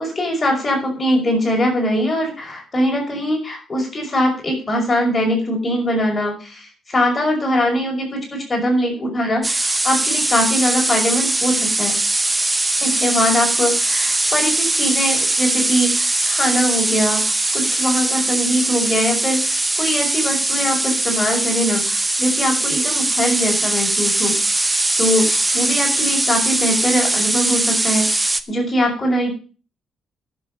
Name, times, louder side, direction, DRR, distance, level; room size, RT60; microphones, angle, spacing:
voice 1, 0.0-12.0 12.8-24.7 25.0-28.1 28.5-29.3, equal, 20° left, 1 dB, 5.7 m, -22 dB
sound 1, 9.4-28.4, right 2 dB, 10° right, 0.8 m, -20 dB
11.0 x 7.2 x 7.8 m, 0.36 s
cardioid pair, 160°, 0 cm